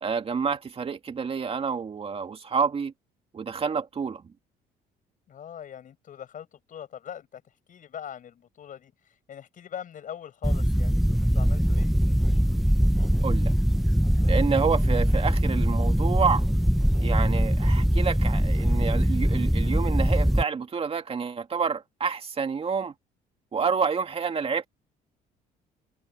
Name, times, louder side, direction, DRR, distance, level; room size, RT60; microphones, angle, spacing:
voice 1, 0.0-2.9 3.3-4.2 13.2-13.5 14.3-16.4 17.0-22.9 23.5-24.7, right 6 dB, 35° right, 2.3 m, -28 dB
voice 2, 5.3-7.4 7.7-8.9 9.3-11.9, left 9 dB, 50° left, 7.7 m, -42 dB
sound 1, 10.4-20.4, equal, ahead, 0.9 m, -22 dB
cardioid pair, 110°, 17 cm